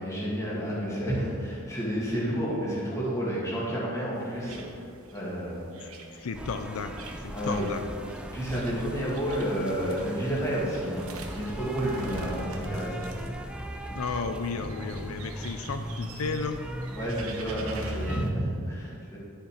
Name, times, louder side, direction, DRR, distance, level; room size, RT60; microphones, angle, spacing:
voice 1, 0.0-4.8 5.1-5.6 7.3-7.7 8.3-13.1 17.0-19.2, equal, 15° left, -6 dB, 2.4 m, -30 dB
sound 1, 4.1-18.2, right 3 dB, 70° right, 1.1 m, -46 dB
voice 2, 5.8-7.8 13.9-16.6, left 4 dB, 75° left, 8 dB, 0.5 m, -34 dB
sound 2, 6.3-18.3, equal, 5° right, 0.4 m, -38 dB
11.0 x 6.8 x 4.9 m, 2.5 s
head